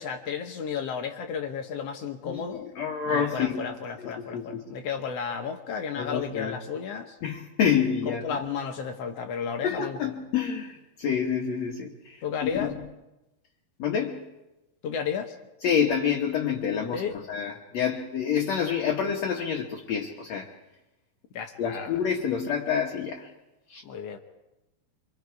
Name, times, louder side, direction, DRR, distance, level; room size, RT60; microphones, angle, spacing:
voice 1, 0.0-2.7 3.0-7.2 8.0-10.1 12.2-12.8 14.8-15.3 16.9-17.2 21.3-22.0 23.8-24.2, left 6 dB, 85° left, 3 dB, 1.3 m, -33 dB
voice 2, 2.8-4.6 6.0-6.6 7.2-8.4 9.6-12.7 13.8-14.2 15.6-20.5 21.6-23.3 23.7-23.8, left 7 dB, 55° left, 0 dB, 2.1 m, -28 dB
26.0 x 24.5 x 4.7 m, 0.99 s
omnidirectional pair, 4.6 m